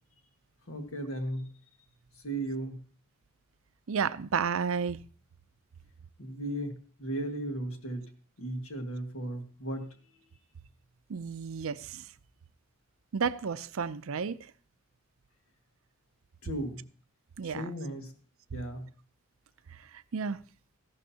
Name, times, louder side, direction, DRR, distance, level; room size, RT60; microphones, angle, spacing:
voice 1, 0.7-1.5 2.2-2.8 6.2-8.1 8.4-9.9 16.4-16.8 17.5-18.1 18.5-18.9, right 1 dB, 75° left, 1.7 m, -36 dB
voice 2, 3.9-5.0 11.1-12.1 13.1-14.4 17.4-17.7 20.1-20.4, right 6 dB, 75° right, 0.5 m, -31 dB
14.5 x 11.5 x 2.8 m
head